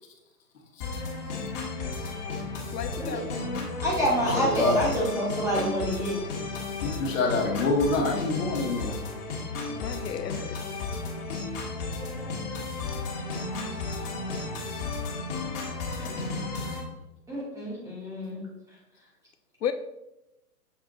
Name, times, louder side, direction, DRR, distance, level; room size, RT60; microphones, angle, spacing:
sound 1, 0.8-16.8, left 3 dB, 35° left, 1.6 m, -34 dB
voice 1, 2.7-3.7 9.8-10.5 19.6-19.7, left 9 dB, 80° left, 9 dB, 0.6 m, -33 dB
voice 2, 3.8-6.2 17.3-18.4, equal, 5° right, -6 dB, 1.4 m, -27 dB
voice 3, 4.3-4.7 6.8-8.9, left 3 dB, 55° left, 1 dB, 1.6 m, -26 dB
6.9 x 3.6 x 3.8 m, 0.93 s
hypercardioid pair, 135°, 48 cm